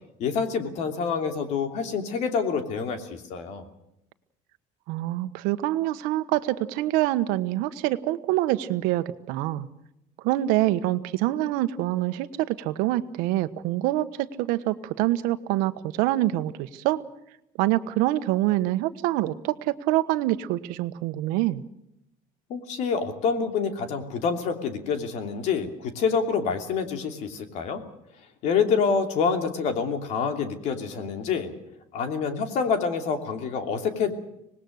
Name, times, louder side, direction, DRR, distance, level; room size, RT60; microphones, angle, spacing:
voice 1, 0.2-3.6 22.5-27.8 28.4-31.5 31.9-34.1, left 5 dB, 55° left, 6 dB, 2.9 m, -27 dB
voice 2, 4.9-9.7 10.2-17.0 17.6-21.6, right 15 dB, 85° right, 11 dB, 1.3 m, -25 dB
25.5 x 19.5 x 6.6 m, 0.82 s
cardioid pair, 175°, 14 cm